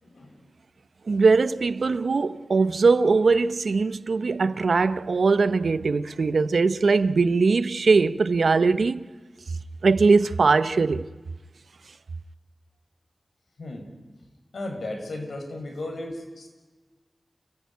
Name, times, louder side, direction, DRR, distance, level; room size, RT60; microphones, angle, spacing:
voice 1, 0.0-0.5 13.6-13.9 14.5-16.5, left 2 dB, 90° left, 5.5 m, -35 dB
voice 2, 1.1-9.1 9.8-11.1, right 4 dB, 85° right, 0.8 m, -21 dB
29.0 x 15.5 x 9.5 m
wide cardioid pair, 60°, 0 cm